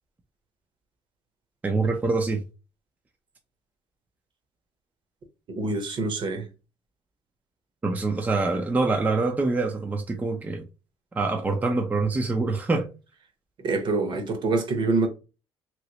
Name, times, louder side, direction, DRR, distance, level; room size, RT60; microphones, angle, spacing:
voice 1, 1.6-2.4 7.8-10.6 11.2-12.9, right 3 dB, 15° right, 0.4 m, -25 dB
voice 2, 5.6-6.5 13.6-15.1, right 3 dB, 45° right, 0.9 m, -25 dB
3.0 x 2.9 x 2.9 m
cardioid pair, 120°, 11 cm